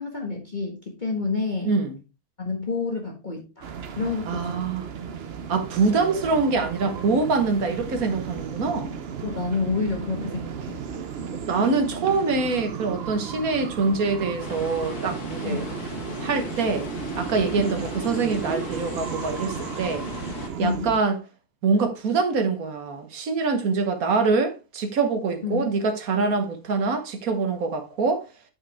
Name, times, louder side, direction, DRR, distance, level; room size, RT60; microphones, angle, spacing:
voice 1, 0.0-1.7 2.4-3.6 4.0-4.7 5.8-6.0 9.2-10.8 15.4-15.7 17.6-17.8 20.6-20.9 25.4-25.7, left 4 dB, 30° left, 1.6 m, -29 dB
voice 2, 1.6-2.0 4.3-4.8 5.5-8.9 11.5-15.6 16.2-16.9 17.2-20.0 20.6-21.2 21.6-28.3, right 4 dB, 70° right, 1.7 m, -24 dB
sound 1, 3.6-21.0, right 6 dB, 50° right, 0.9 m, -34 dB
sound 2, 14.4-20.5, left 4 dB, 80° left, 1.9 m, -38 dB
9.1 x 5.4 x 3.5 m
omnidirectional pair, 1.6 m